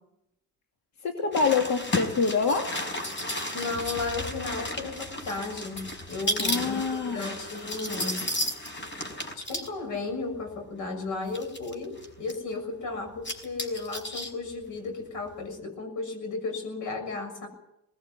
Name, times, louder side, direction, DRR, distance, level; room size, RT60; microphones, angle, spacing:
voice 1, 1.0-2.7 6.4-7.3, left 5 dB, 65° left, 4 dB, 2.4 m, -26 dB
sound 1, 1.3-9.7 10.5-10.6 11.3-12.4 13.1-14.3 14.6-14.7, left 1 dB, 40° left, 5.1 m, -33 dB
voice 2, 3.5-8.3 9.3-17.5, left 3 dB, 85° left, 6 dB, 6.7 m, -34 dB
19.5 x 17.5 x 9.8 m, 0.84 s
cardioid pair, 90°, 30 cm